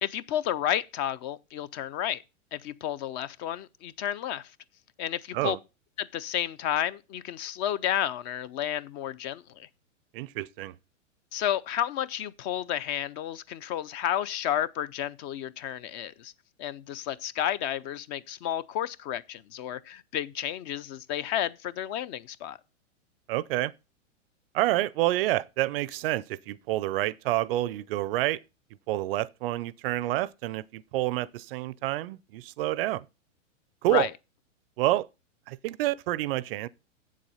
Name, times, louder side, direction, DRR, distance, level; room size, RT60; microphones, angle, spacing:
voice 1, 0.0-2.2 2.5-4.5 5.0-5.6 6.0-9.7 11.3-16.3 16.6-22.6 33.9-34.1, left 11 dB, 35° left, 0.6 m, -31 dB
voice 2, 10.1-10.7 23.3-23.7 24.5-28.4 28.9-33.0 33.8-34.1 34.8-35.1 35.5-36.7, right 16 dB, 50° right, 0.5 m, -28 dB
8.0 x 7.4 x 5.5 m
hypercardioid pair, 125°, 38 cm